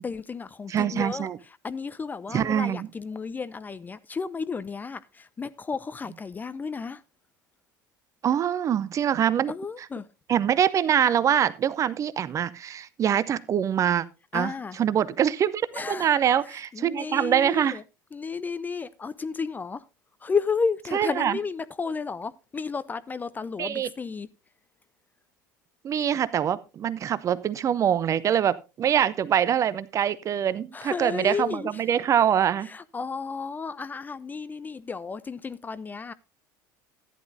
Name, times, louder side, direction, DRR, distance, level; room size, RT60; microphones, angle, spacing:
voice 1, 0.0-1.3 1.6-7.0 9.5-10.1 14.3-14.8 15.7-16.2 16.4-17.8 18.1-19.9 20.2-24.3 30.7-31.8 32.6-36.1, left 5 dB, 15° left, 0.5 m, -32 dB
voice 2, 0.7-1.4 2.3-2.9 8.2-9.5 10.3-14.1 14.3-14.5 14.8-17.8 20.9-21.4 23.6-23.9 25.8-32.7, right 9 dB, 30° right, 0.6 m, -24 dB
14.5 x 10.0 x 2.6 m
figure-of-eight pair, 75°, 11 cm